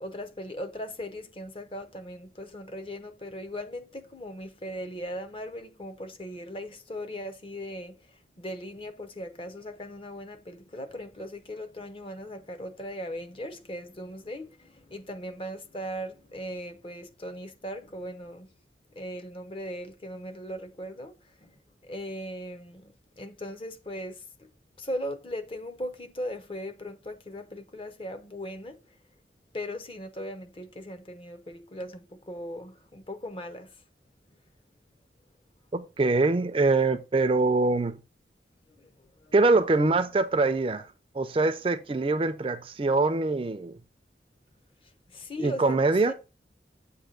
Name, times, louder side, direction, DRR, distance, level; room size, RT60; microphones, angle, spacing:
voice 1, 0.0-18.5 18.9-24.5 24.8-29.0 29.5-33.8 38.7-39.3 45.1-46.1, equal, 30° left, 0.6 m, -39 dB
voice 2, 35.7-38.0 39.3-40.9 41.1-43.8 45.4-46.1, right 3 dB, 30° right, 0.4 m, -24 dB
7.6 x 2.6 x 5.0 m
head